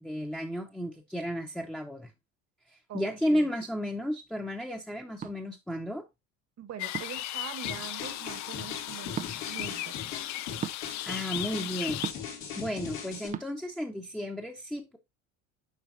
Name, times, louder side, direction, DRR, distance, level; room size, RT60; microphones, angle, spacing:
voice 1, 0.0-2.1 2.9-6.0 11.1-12.0 12.6-15.0, equal, ahead, 0.9 m, -33 dB
voice 2, 2.9-3.5 6.6-10.0, right 9 dB, 40° right, 1.4 m, -43 dB
sound 1, 5.2-5.4 6.9-7.3 9.1-9.3 10.6-10.8 12.0-12.4 13.3-13.5, right 9 dB, 20° right, 0.4 m, -35 dB
sound 2, 6.8-12.1, left 14 dB, 45° left, 0.5 m, -36 dB
sound 3, 7.6-13.3, left 7 dB, 80° left, 2.2 m, -40 dB
7.3 x 5.0 x 2.5 m
hypercardioid pair, 75°, 39 cm